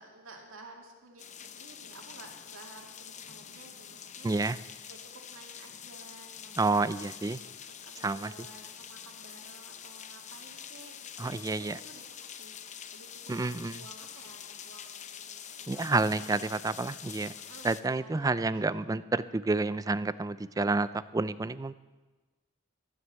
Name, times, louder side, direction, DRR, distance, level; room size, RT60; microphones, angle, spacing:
voice 1, 0.0-4.3 4.9-12.0 12.3-16.8 17.4-19.2, right 2 dB, 85° right, 1 dB, 2.3 m, -53 dB
sound 1, 1.2-17.8, left 8 dB, 35° left, 0.6 m, -46 dB
voice 2, 4.2-4.6 6.6-7.4 8.0-8.3 11.2-11.8 13.3-13.8 15.7-17.3 17.6-21.7, right 3 dB, 15° right, 15 dB, 0.4 m, -29 dB
12.5 x 9.5 x 8.0 m, 1.2 s
head